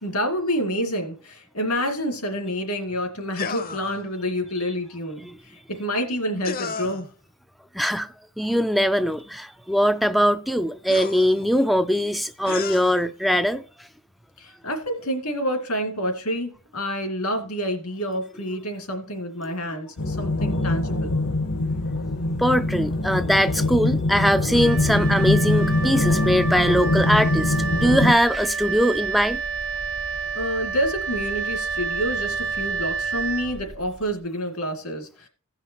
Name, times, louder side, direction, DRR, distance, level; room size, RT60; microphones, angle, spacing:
voice 1, 0.0-7.1 14.4-21.1 30.3-35.3, equal, 85° left, 2.4 m, -28 dB
sound 1, 3.3-4.0 6.4-7.1 9.2-9.3 10.9-11.6 12.5-13.0, left 5 dB, 45° left, 0.7 m, -33 dB
voice 2, 7.7-8.1 8.4-13.6 22.4-29.4, equal, ahead, 0.3 m, -21 dB
sound 2, 20.0-28.1, left 2 dB, 70° left, 0.9 m, -23 dB
Wind instrument woodwind instrument, 24.5-34.0, right 5 dB, 65° right, 1.5 m, -29 dB
16.5 x 5.7 x 2.9 m
head